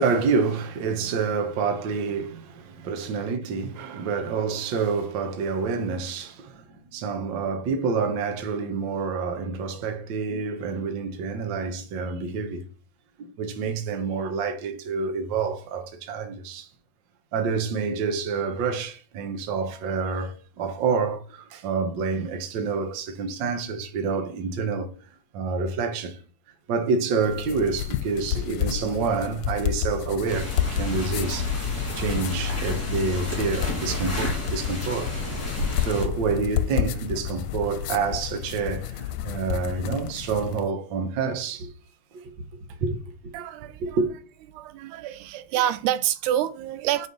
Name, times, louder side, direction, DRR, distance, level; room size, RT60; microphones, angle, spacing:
voice 1, 0.0-12.6 13.4-16.7 17.3-24.9 25.3-26.2 26.7-35.1 35.8-41.7 42.1-42.3 42.8-43.0 43.2-43.3 43.8-44.1, right 5 dB, 70° right, 1.1 m, -28 dB
sound 1, 27.2-40.7, left 11 dB, 80° left, 1.9 m, -31 dB
sound 2, 30.3-36.0, left 3 dB, 10° left, 2.6 m, -30 dB
voice 2, 43.3-44.0 44.5-47.1, right 12 dB, 90° right, 2.1 m, -27 dB
5.4 x 5.0 x 3.9 m
omnidirectional pair, 3.5 m